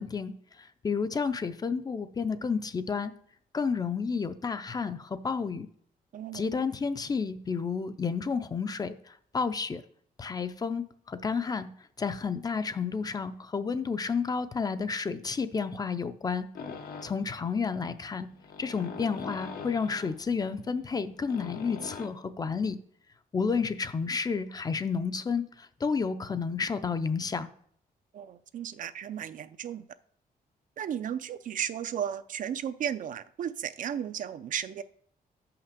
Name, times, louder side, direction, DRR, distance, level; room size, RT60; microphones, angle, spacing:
voice 1, 0.0-3.1 3.5-5.7 6.3-9.8 10.2-11.7 12.0-16.5 17.0-18.3 18.6-22.8 23.3-27.5, left 5 dB, 25° left, 11 dB, 0.4 m, -31 dB
sound 1, 16.6-22.1, left 5 dB, 90° left, 1.2 m, -43 dB
voice 2, 28.1-29.8 30.8-34.8, right 9 dB, 55° right, 13 dB, 0.5 m, -34 dB
5.8 x 5.7 x 6.6 m, 0.64 s
wide cardioid pair, 170°, 16 cm